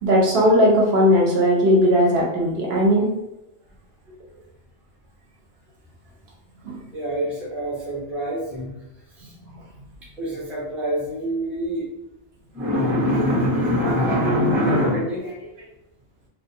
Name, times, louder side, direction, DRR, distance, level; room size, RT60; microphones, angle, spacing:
voice 1, 0.0-3.1 6.6-6.8 9.2-9.3, equal, 65° right, -3 dB, 0.8 m, -18 dB
voice 2, 4.1-4.4 6.9-8.7 9.1-9.3 10.2-11.9 12.5-15.7, equal, ahead, -6 dB, 0.5 m, -24 dB
2.3 x 2.2 x 2.7 m, 0.90 s
omnidirectional pair, 1.2 m